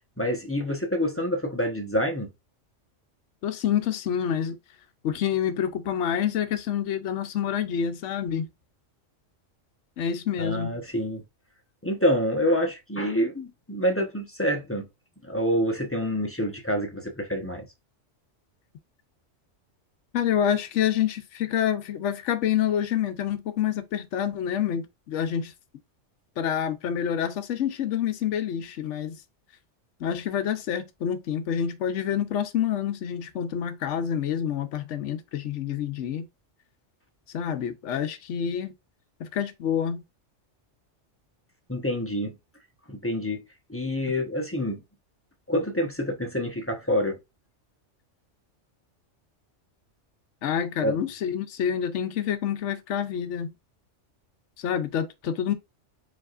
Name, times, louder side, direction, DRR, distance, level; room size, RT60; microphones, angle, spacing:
voice 1, 0.2-2.3 10.4-11.2 11.8-14.9 15.2-17.6 41.7-42.4 42.9-43.4 43.7-44.8 45.5-47.2 50.8-51.0, equal, 10° left, 0.9 m, -27 dB
voice 2, 3.4-4.6 5.0-8.5 10.0-10.8 20.1-25.5 26.4-29.2 30.0-36.3 37.3-38.7 39.2-40.0 50.4-53.5 54.6-55.5, left 9 dB, 75° left, 1.0 m, -27 dB
4.8 x 4.1 x 2.5 m
omnidirectional pair, 1.3 m